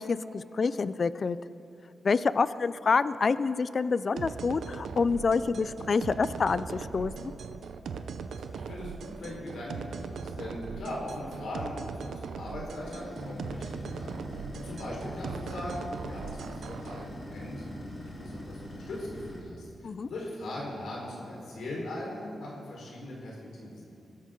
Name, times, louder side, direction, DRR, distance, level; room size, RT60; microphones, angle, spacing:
voice 1, 0.0-1.4 2.0-7.3 19.8-20.1, left 4 dB, 45° left, 15 dB, 0.4 m, -27 dB
sound 1, 4.2-17.0, right 5 dB, 85° right, 0.7 m, -39 dB
voice 2, 8.5-11.7 12.0-23.8, left 1 dB, 85° left, -4 dB, 4.3 m, -40 dB
sound 2, 12.8-19.4, equal, 25° left, 4.0 m, -42 dB
22.0 x 12.5 x 3.8 m, 2.7 s
wide cardioid pair, 115°, 0 cm